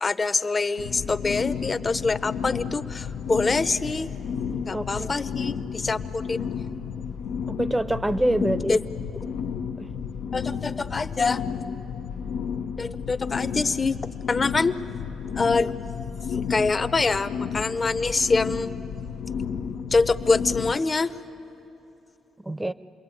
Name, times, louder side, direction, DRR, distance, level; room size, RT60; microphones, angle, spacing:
voice 1, 0.0-4.1 4.6-6.5 8.4-8.8 10.3-11.4 12.8-13.9 14.3-14.8 15.3-15.7 16.3-18.7 19.9-21.1, left 3 dB, 30° left, 12 dB, 0.9 m, -25 dB
sound 1, 0.8-20.8, left 6 dB, 80° left, 0.8 m, -32 dB
voice 2, 4.7-5.2 7.5-8.8 9.8-9.9 22.4-22.7, right 1 dB, 10° right, 14 dB, 0.8 m, -26 dB
28.0 x 21.5 x 9.2 m, 2.9 s
cardioid pair, 90°, 0 cm